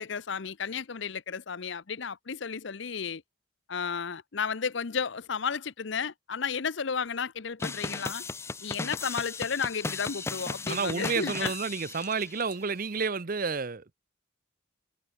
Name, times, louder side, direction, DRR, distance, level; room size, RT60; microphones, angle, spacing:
voice 1, 0.0-3.2 3.7-8.2 8.6-11.5, left 6 dB, 60° left, 0.7 m, -33 dB
sound 1, 7.6-12.5, left 3 dB, 15° left, 0.3 m, -36 dB
voice 2, 10.7-14.0, right 5 dB, 45° right, 0.7 m, -30 dB
head